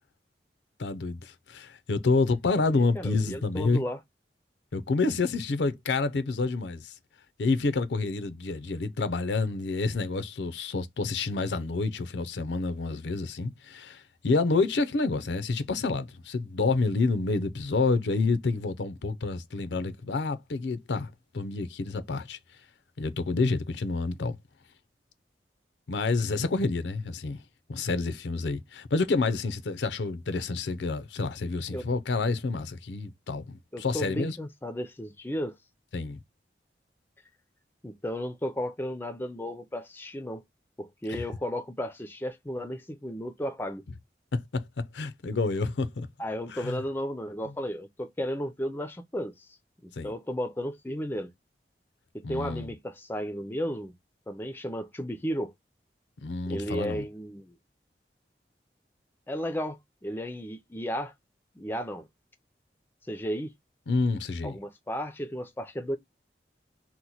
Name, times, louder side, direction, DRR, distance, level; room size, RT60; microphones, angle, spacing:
voice 1, 0.8-3.9 4.7-6.9 7.4-22.4 23.0-24.4 25.9-27.4 27.7-34.4 35.9-36.2 41.1-41.2 44.3-46.1 46.5-46.8 50.0-50.1 52.2-52.7 56.2-57.0 63.9-64.6, left 3 dB, 85° left, 0.5 m, -28 dB
voice 2, 2.7-4.0 31.7-31.9 33.7-35.6 37.8-40.4 40.8-43.8 46.2-49.6 49.8-51.3 52.1-53.9 54.3-55.5 56.5-57.5 59.3-61.1 61.6-62.1 63.1-63.5 64.4-66.0, equal, 10° left, 0.4 m, -34 dB
2.9 x 2.1 x 3.9 m
head